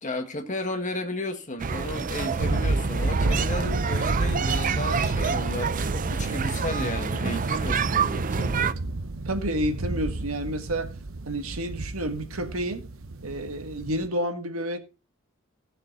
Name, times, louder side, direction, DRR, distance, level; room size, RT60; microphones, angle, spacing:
voice 1, 0.0-8.8, left 2 dB, 35° left, 1.7 m, -33 dB
sound 1, 1.6-8.7, right 5 dB, 40° right, 0.5 m, -28 dB
sound 2, 2.4-14.1, right 2 dB, 65° right, 0.9 m, -31 dB
voice 2, 9.3-10.9 11.3-12.9 13.2-14.8, right 1 dB, 85° right, 1.7 m, -30 dB
16.5 x 6.8 x 4.0 m
head